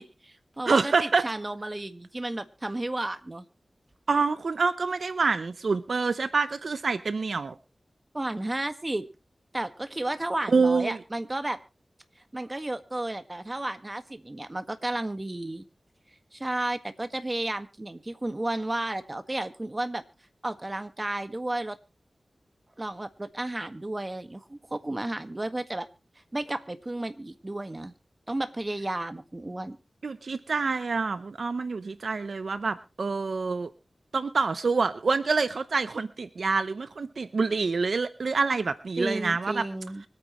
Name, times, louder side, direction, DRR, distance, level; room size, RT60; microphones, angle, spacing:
voice 1, 0.0-3.5 8.1-9.1 9.5-11.6 12.3-15.7 16.3-20.0 20.4-21.8 22.8-25.9 26.3-27.9 28.3-29.8 39.0-40.0, right 1 dB, 30° right, 9 dB, 1.7 m, -33 dB
voice 2, 0.7-1.3 4.1-7.5 10.5-11.0 30.0-33.7 34.1-39.6, right 4 dB, 80° right, 12 dB, 0.7 m, -26 dB
25.0 x 9.2 x 3.2 m, 0.30 s
cardioid pair, 45°, 0 cm